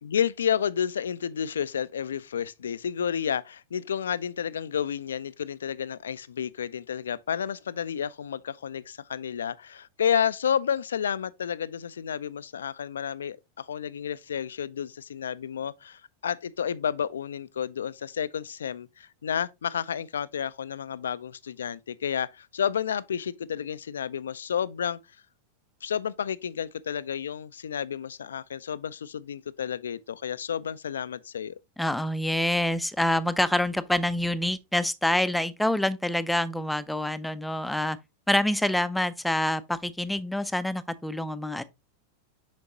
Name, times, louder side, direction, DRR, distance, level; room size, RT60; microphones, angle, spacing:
voice 1, 0.0-25.0 25.8-31.5, left 8 dB, 65° left, 0.3 m, -31 dB
voice 2, 31.8-38.0 38.3-41.6, left 1 dB, 5° left, 0.5 m, -26 dB
7.2 x 5.2 x 2.8 m
figure-of-eight pair, 90°, 0 cm